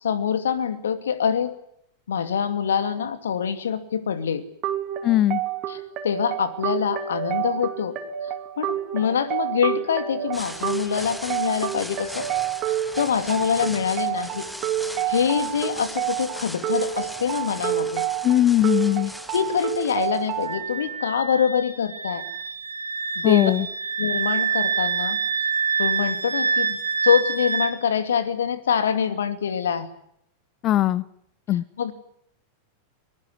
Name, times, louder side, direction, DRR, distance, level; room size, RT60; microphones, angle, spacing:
voice 1, 0.0-1.6 2.1-4.4 5.7-8.0 8.6-12.3 12.7-14.5 15.1-18.0 19.3-22.2 23.2-23.5 24.0-25.2 25.8-26.8 27.0-29.9 31.8-31.9, left 7 dB, 65° left, 12 dB, 2.4 m, -25 dB
sound 1, 4.6-20.6, right 11 dB, 35° right, 3.0 m, -29 dB
voice 2, 5.0-5.4 18.2-19.1 23.2-23.7 30.6-31.0 31.5-31.6, left 13 dB, 35° left, 21 dB, 1.0 m, -19 dB
sound 2, 10.3-21.0, equal, ahead, 1.8 m, -39 dB
Wind instrument woodwind instrument, 20.5-27.7, right 6 dB, 75° right, 4.0 m, -26 dB
23.0 x 22.0 x 9.6 m, 0.71 s
figure-of-eight pair, 90°, 0 cm